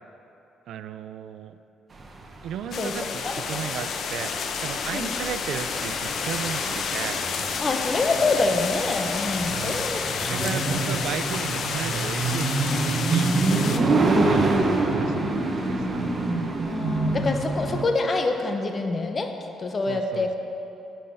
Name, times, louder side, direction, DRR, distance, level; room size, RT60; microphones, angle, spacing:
voice 1, 0.7-1.6 2.4-7.2 9.5-9.9 10.3-15.3 15.7-16.1 19.9-20.4, right 9 dB, 80° right, 12 dB, 0.4 m, -35 dB
sound 1, 2.0-17.8, right 3 dB, 35° right, 1.2 m, -27 dB
sound 2, 2.7-13.8, left 6 dB, 65° left, 0.7 m, -30 dB
voice 2, 3.2-3.6 4.9-5.1 7.6-10.8 14.0-14.8 16.7-19.3 19.6-20.4, left 3 dB, 35° left, 5 dB, 0.9 m, -27 dB
9.9 x 5.7 x 7.6 m, 2.9 s
cardioid pair, 90°, 0 cm